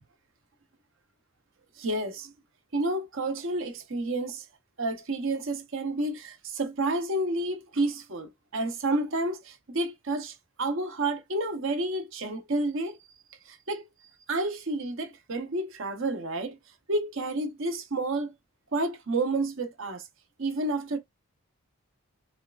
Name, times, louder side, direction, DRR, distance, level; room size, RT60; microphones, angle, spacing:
voice 1, 1.8-2.3 2.7-4.4 4.8-13.0 13.5-13.8 14.3-16.6 16.9-18.3 18.7-20.1 20.4-21.0, right 2 dB, 60° right, 0.9 m, -30 dB
5.4 x 2.4 x 2.4 m
head